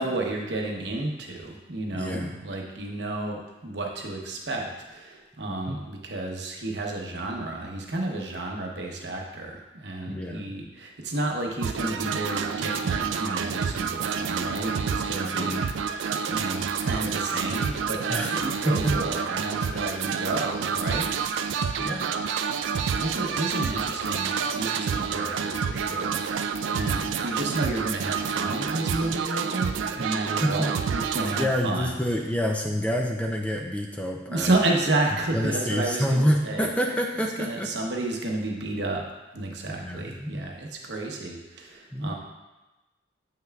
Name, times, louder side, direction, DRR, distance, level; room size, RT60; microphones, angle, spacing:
voice 1, 0.0-21.7 22.9-32.2 34.3-37.0 37.4-42.1, right 2 dB, 65° right, 1 dB, 0.9 m, -31 dB
voice 2, 1.9-2.4 5.5-5.8 10.1-10.5 15.2-15.6 18.1-18.3 18.6-19.0 19.4-19.8 21.8-22.1 30.4-30.7 31.3-34.7 35.3-37.7 39.7-40.4 41.9-42.1, equal, 5° left, 1 dB, 0.4 m, -28 dB
sound 1, 11.6-31.5, right 6 dB, 85° right, 0.3 m, -28 dB
7.6 x 5.6 x 2.3 m, 1.1 s
head